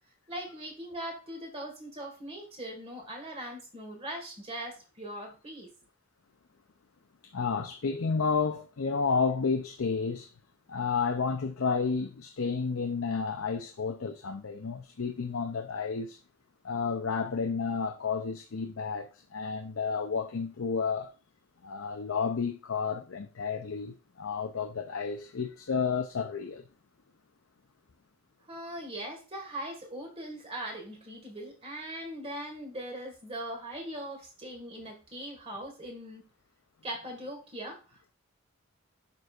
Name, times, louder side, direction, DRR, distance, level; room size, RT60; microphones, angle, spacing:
voice 1, 0.3-5.7 28.5-36.3 36.8-38.1, right 1 dB, 30° right, 1.9 m, -40 dB
voice 2, 7.2-10.3 10.7-16.2 16.6-21.1 21.6-26.6, left 5 dB, 85° left, 0.6 m, -31 dB
11.0 x 4.7 x 2.5 m
head